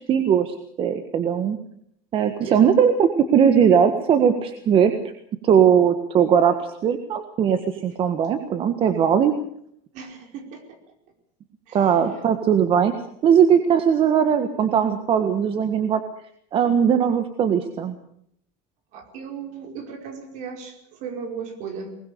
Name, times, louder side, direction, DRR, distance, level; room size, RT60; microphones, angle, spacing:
voice 1, 0.1-1.6 2.1-4.9 5.4-9.3 11.7-12.9 13.2-16.0 16.5-18.0, right 8 dB, 40° right, 9 dB, 1.6 m, -19 dB
voice 2, 9.9-10.8 11.7-11.9 18.9-22.0, right 6 dB, 55° right, 5 dB, 5.0 m, -36 dB
22.5 x 20.0 x 6.9 m, 0.69 s
cardioid pair, 150°, 15 cm